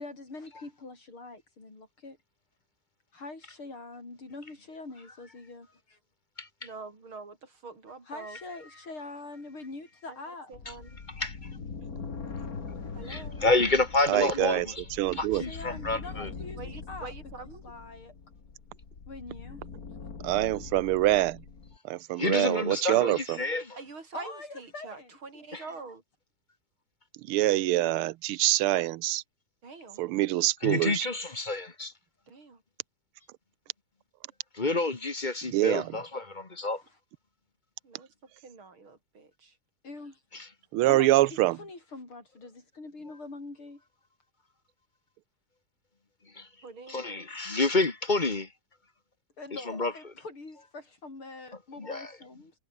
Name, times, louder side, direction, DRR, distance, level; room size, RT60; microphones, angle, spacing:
voice 1, 0.0-2.2 3.1-6.0 8.1-10.5 15.4-16.6 16.9-17.1 17.6-18.1 19.1-19.6 24.1-25.8 39.8-40.2 40.9-43.8 49.4-52.5, left 3 dB, 80° left, 7.5 m, -44 dB
voice 2, 6.6-8.4 10.1-10.2 10.5-10.9 12.9-13.5 16.6-17.6 23.8-26.0 29.6-30.0 32.3-32.6 37.8-38.1 38.4-39.6 46.6-47.0, right 4 dB, 70° right, 5.1 m, -45 dB
sound 1, 10.5-21.8, left 5 dB, 45° left, 2.7 m, -42 dB
voice 3, 13.1-14.8 15.1-16.3 22.2-23.8 25.5-25.6 30.6-31.9 34.5-36.8 46.4-46.5 46.9-48.5 49.5-49.9 51.8-52.1, left 3 dB, 25° left, 1.5 m, -29 dB
voice 4, 14.1-14.7 15.0-15.4 20.2-21.4 21.9-23.4 27.3-29.2 30.0-31.1 35.5-35.9 40.7-41.6, right 16 dB, 90° right, 1.6 m, -25 dB
omnidirectional pair, 2.3 m